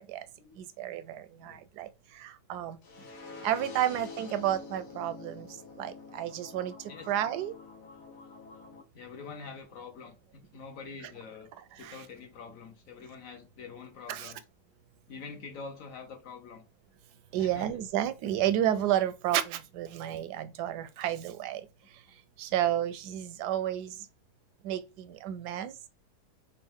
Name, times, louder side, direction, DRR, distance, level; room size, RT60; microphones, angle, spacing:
voice 1, 0.8-1.9 2.2-2.8 3.4-5.5 5.8-6.7 7.1-7.5 14.1-14.3 17.3-21.6 22.4-23.9 24.6-24.8 25.2-25.7, right 11 dB, 80° right, 1.1 m, -31 dB
sound 1, 2.8-8.8, left 4 dB, 85° left, 1.6 m, -47 dB
voice 2, 2.9-3.3 5.4-5.5 6.9-7.2 8.9-11.5 11.8-14.4 15.1-16.7 17.4-17.8, left 5 dB, 60° left, 1.2 m, -46 dB
5.3 x 2.3 x 3.5 m
omnidirectional pair, 1.7 m